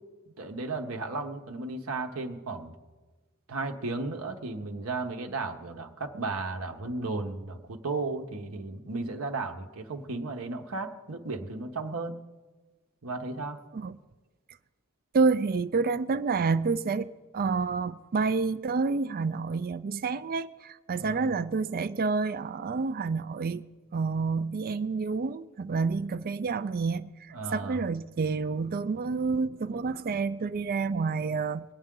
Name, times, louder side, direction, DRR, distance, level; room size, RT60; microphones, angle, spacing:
voice 1, 0.4-2.7 3.5-12.2 13.0-13.6 20.9-21.3 27.3-27.8, right 3 dB, 65° right, 4 dB, 1.0 m, -34 dB
voice 2, 15.1-17.1 17.3-23.6 23.9-31.6, right 4 dB, 40° right, 13 dB, 0.4 m, -29 dB
22.5 x 8.9 x 3.7 m, 1.3 s
head